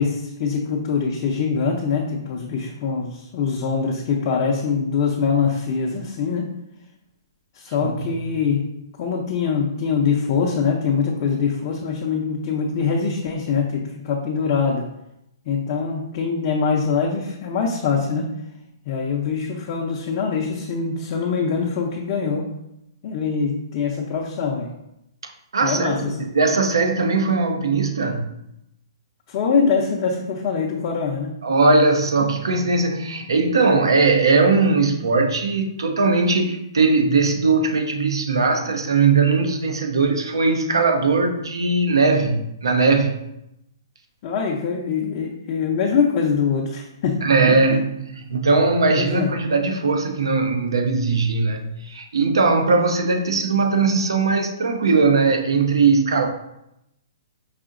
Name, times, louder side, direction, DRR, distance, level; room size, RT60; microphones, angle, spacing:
voice 1, 0.0-6.5 7.5-8.7 9.0-14.9 15.5-18.3 18.9-22.5 23.0-24.7 25.6-26.3 29.3-31.3 44.2-47.2 48.9-49.3, left 5 dB, 45° left, -1 dB, 0.5 m, -23 dB
voice 2, 25.5-26.0 26.2-28.2 31.4-43.2 47.2-56.3, right 3 dB, 85° right, 5 dB, 0.6 m, -19 dB
4.9 x 2.7 x 2.5 m, 0.83 s
hypercardioid pair, 135°, 2 cm